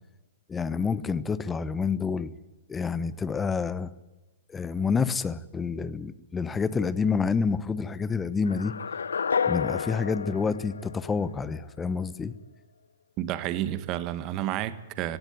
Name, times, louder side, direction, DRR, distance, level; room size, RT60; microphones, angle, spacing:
voice 1, 0.5-2.3 2.7-3.9 4.5-8.7 9.5-12.3, left 5 dB, 15° left, 17 dB, 1.1 m, -28 dB
sound 1, 8.5-11.6, left 6 dB, 85° left, 0.8 m, -30 dB
voice 2, 13.2-15.2, right 12 dB, 35° right, 14 dB, 1.6 m, -30 dB
17.0 x 17.0 x 9.6 m, 1.1 s
hypercardioid pair, 125°, 0 cm